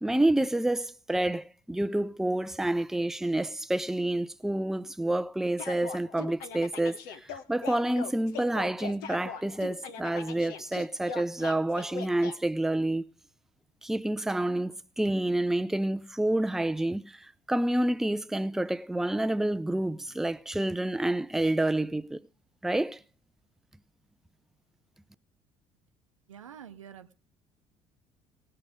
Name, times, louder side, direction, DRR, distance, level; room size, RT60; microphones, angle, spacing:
voice 1, 0.0-13.0 13.8-22.3 22.6-23.0, right 1 dB, ahead, 0.5 m, -28 dB
sound 1, 5.6-12.3, left 6 dB, 70° left, 1.1 m, -40 dB
voice 2, 26.3-27.1, right 8 dB, 90° right, 0.7 m, -47 dB
18.5 x 6.7 x 5.1 m
hypercardioid pair, 55°, 16 cm